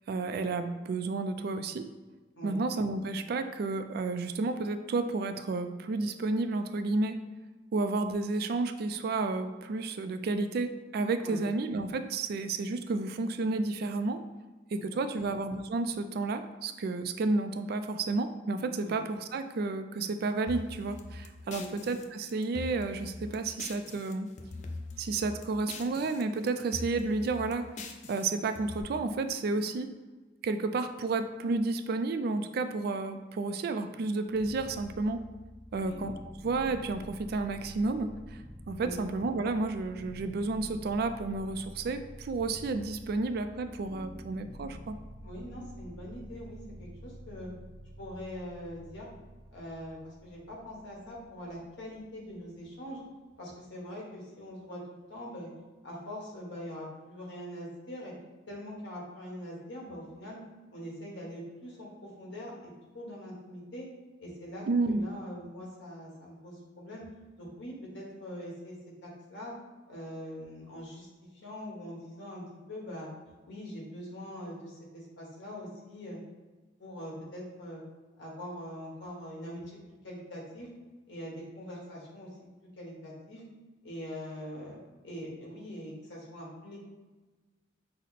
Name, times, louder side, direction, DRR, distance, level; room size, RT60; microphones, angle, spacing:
voice 1, 0.1-1.8 2.4-7.2 7.7-14.2 14.7-24.3 25.0-29.9 30.4-35.2 35.7-36.1 36.4-38.4 38.7-45.0 64.7-65.0, right 3 dB, 55° right, 9 dB, 0.3 m, -31 dB
voice 2, 14.7-15.3 18.8-19.0 21.5-21.7 35.8-36.0 38.8-39.0 45.2-47.5 48.0-49.1 49.5-53.0 53.4-55.5 55.8-58.1 58.5-60.4 60.7-63.9 64.2-67.1 67.4-68.7 69.0-69.5 69.9-73.1 73.5-76.2 76.8-77.8 78.2-79.8 80.0-80.7 81.1-82.3 82.8-83.4 83.8-84.8 85.0-86.8, equal, 80° left, -3 dB, 1.4 m, -43 dB
sound 1, 20.5-24.1 24.4-26.2 26.5-28.8, left 3 dB, 40° left, 0.4 m, -43 dB
sound 2, 34.3-53.3, equal, 80° right, 1.2 m, -49 dB
5.5 x 2.0 x 4.1 m, 1.2 s
head